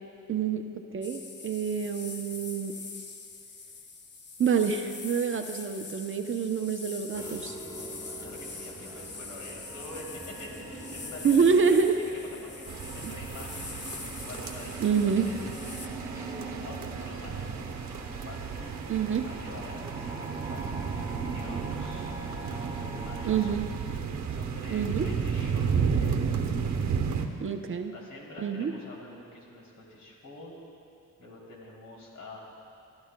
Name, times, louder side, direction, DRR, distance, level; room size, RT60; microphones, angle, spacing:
voice 1, 0.3-2.8 4.4-7.6 11.2-12.0 13.0-13.1 14.8-15.3 18.9-19.3 23.3-23.7 24.7-25.1 27.4-27.9 28.4-28.7, right 6 dB, 40° right, 6 dB, 0.6 m, -27 dB
sound 1, 1.0-15.9, left 4 dB, 35° left, 0.8 m, -43 dB
sound 2, 7.1-23.6, right 2 dB, 10° right, 1.1 m, -43 dB
voice 2, 8.2-11.3 11.7-13.7 14.2-17.6 18.0-18.8 19.2-22.1 22.4-23.5 24.3-26.3 26.6-27.5 27.9-30.5 31.2-32.4, left 1 dB, 65° left, -3 dB, 3.1 m, -47 dB
sound 3, 12.7-27.3, right 6 dB, 60° right, 0.9 m, -33 dB
22.5 x 11.5 x 2.2 m, 2.6 s
cardioid pair, 105°, 32 cm